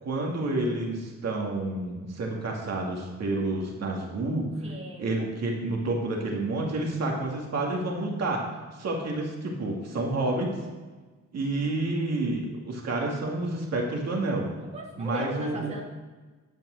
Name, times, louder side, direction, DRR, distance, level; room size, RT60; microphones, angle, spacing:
voice 1, 0.0-4.5 5.0-8.5 8.7-10.5 11.3-14.5 15.0-15.8, right 2 dB, 60° right, 0 dB, 2.3 m, -29 dB
voice 2, 4.6-5.0 14.6-15.8, right 2 dB, 20° right, -3 dB, 1.9 m, -38 dB
10.5 x 5.3 x 6.4 m, 1.3 s
cardioid pair, 90°, 30 cm